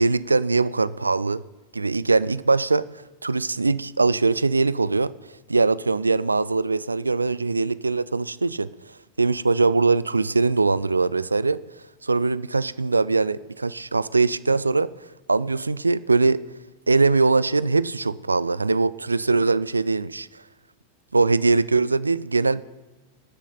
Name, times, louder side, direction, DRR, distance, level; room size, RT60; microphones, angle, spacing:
voice 1, 0.0-1.4 1.7-2.8 3.2-5.1 5.5-8.7 9.2-11.6 12.0-14.9 15.3-16.4 16.9-20.4 21.1-22.7, right 3 dB, 80° right, 18 dB, 0.3 m, -21 dB
20.0 x 7.2 x 4.1 m, 1.2 s
figure-of-eight pair, 90°, 0 cm